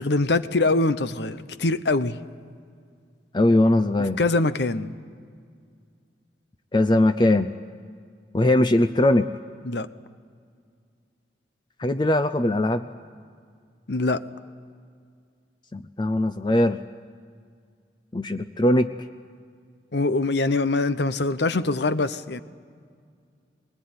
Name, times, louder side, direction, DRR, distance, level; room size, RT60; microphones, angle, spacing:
voice 1, 0.0-2.2 4.2-5.0 9.6-9.9 13.9-14.2 19.9-22.4, left 2 dB, 70° left, 0.9 m, -23 dB
voice 2, 3.3-4.2 6.7-7.5 8.3-9.3 11.8-12.9 15.7-16.8 18.1-18.9, left 1 dB, 25° left, 0.5 m, -20 dB
22.5 x 21.0 x 9.6 m
head